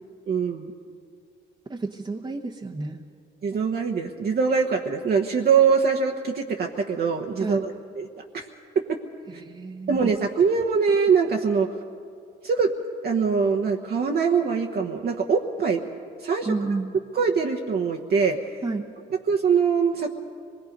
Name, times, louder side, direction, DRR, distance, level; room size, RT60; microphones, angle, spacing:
voice 1, 0.3-0.7 3.4-8.1 8.3-8.5 8.7-9.0 9.9-11.7 12.4-12.7 13.0-15.8 16.2-16.5 17.1-18.5 19.3-20.1, right 5 dB, 55° right, 1 dB, 1.2 m, -23 dB
voice 2, 1.7-3.0 7.4-7.6 9.3-10.1 16.4-16.9 18.6-18.9, right 3 dB, 25° right, 0 dB, 1.1 m, -31 dB
25.0 x 20.5 x 5.3 m, 2.3 s
cardioid pair, 90°, 20 cm